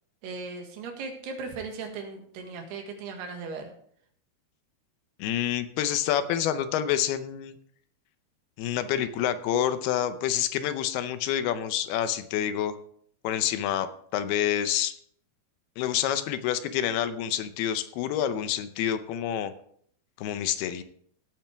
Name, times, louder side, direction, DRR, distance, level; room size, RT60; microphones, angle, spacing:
voice 1, 0.2-3.7, right 4 dB, 80° right, 3 dB, 3.8 m, -37 dB
voice 2, 5.2-7.6 8.6-12.8 13.2-13.9 14.1-14.9 15.8-19.5 20.2-20.8, left 10 dB, 80° left, 11 dB, 2.6 m, -28 dB
17.0 x 9.0 x 3.5 m, 0.62 s
omnidirectional pair, 4.7 m